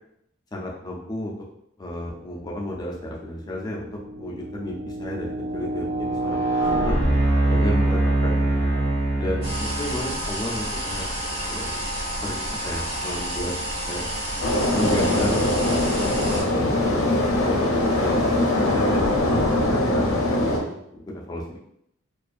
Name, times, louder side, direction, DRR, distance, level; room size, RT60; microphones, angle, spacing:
voice 1, 0.5-1.3 1.8-5.3 5.5-7.0 7.5-8.5 9.2-11.1 11.5-11.9 12.2-13.5 13.9-14.1 14.8-15.5 16.3-17.6 17.9-19.0 19.5-21.6, left 1 dB, 20° left, -3 dB, 0.4 m, -32 dB
sound 1, 2.5-2.7 3.3-10.2, right 2 dB, 70° right, 0.6 m, -24 dB
sound 2, 9.4-16.4, equal, 30° right, 0.8 m, -30 dB
sound 3, 14.4-20.6, left 1 dB, 75° left, 0.5 m, -22 dB
2.4 x 2.3 x 2.4 m, 0.75 s
head